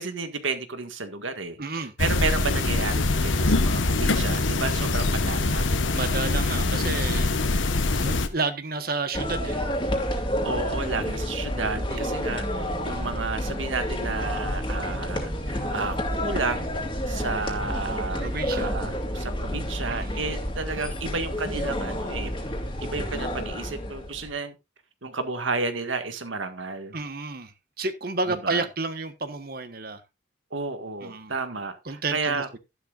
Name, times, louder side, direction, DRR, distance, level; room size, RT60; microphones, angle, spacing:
voice 1, 0.0-5.8 10.4-16.8 17.1-18.2 18.5-22.3 22.8-24.5 25.0-27.0 28.3-28.7 30.5-32.5, right 3 dB, 85° right, 8 dB, 1.8 m, -32 dB
voice 2, 1.6-1.9 5.9-7.4 8.0-9.6 10.9-11.0 11.7-12.0 18.2-18.7 19.9-20.2 26.9-30.0 31.0-31.3 31.8-32.6, right 3 dB, 50° right, 10 dB, 1.3 m, -31 dB
sound 1, 2.0-8.3, left 2 dB, 85° left, 1.3 m, -24 dB
sound 2, 9.1-24.3, equal, 25° left, 2.4 m, -29 dB
12.5 x 11.0 x 2.5 m, 0.23 s
head